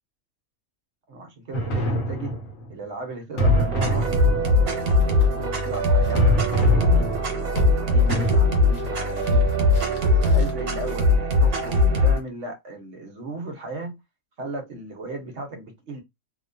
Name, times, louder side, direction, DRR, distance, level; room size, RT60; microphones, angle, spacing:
voice 1, 1.1-2.4 2.7-4.2 4.9-7.1 7.6-9.4 10.2-14.0 14.4-16.0, right 2 dB, 60° right, 1.0 m, -36 dB
sound 1, 1.5-2.7 3.4-4.8 6.1-7.5 8.1-8.3, right 2 dB, 75° left, 1.2 m, -26 dB
sound 2, 3.4-11.8, equal, 50° left, 1.0 m, -41 dB
sound 3, 3.4-12.2, left 2 dB, 85° right, 1.2 m, -20 dB
2.8 x 2.2 x 2.5 m
omnidirectional pair, 1.5 m